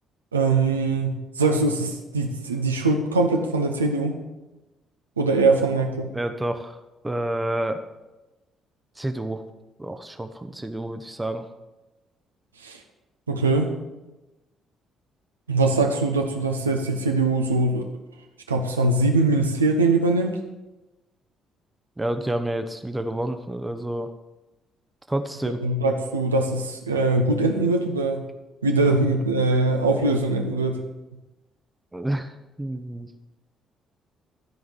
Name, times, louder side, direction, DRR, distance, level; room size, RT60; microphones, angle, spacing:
voice 1, 0.3-4.2 5.2-6.1 12.6-12.8 13.3-13.7 15.5-17.9 18.5-20.4 25.6-28.3 28.6-30.8, right 3 dB, 85° right, 3 dB, 0.8 m, -22 dB
voice 2, 6.1-7.8 9.0-9.4 9.8-11.5 22.0-24.1 25.1-25.6 28.8-28.9 29.5-29.7 31.9-32.3 32.6-33.1, right 1 dB, 15° right, 7 dB, 0.9 m, -29 dB
13.0 x 5.2 x 8.0 m, 1.1 s
figure-of-eight pair, 45°, 0 cm